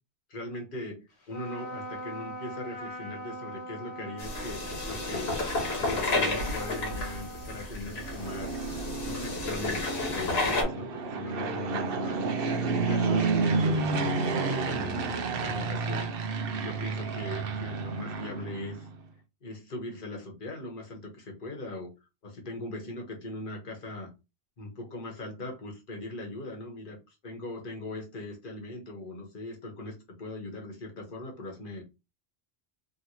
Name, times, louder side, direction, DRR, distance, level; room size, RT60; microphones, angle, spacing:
voice 1, 0.3-5.3 5.8-8.5 9.0-18.9 19.4-21.9 22.2-24.1 24.6-27.0 27.2-31.8, left 2 dB, 55° left, 0 dB, 1.2 m, -40 dB
Trumpet, 1.2-8.1, right 1 dB, 90° left, 1.5 m, -41 dB
sound 1, 4.2-10.6, left 2 dB, 75° left, 1.4 m, -31 dB
Fixed-wing aircraft airplane, 7.9-19.0, right 4 dB, 65° right, 0.8 m, -30 dB
3.0 x 3.0 x 2.7 m, 0.26 s
omnidirectional pair, 1.1 m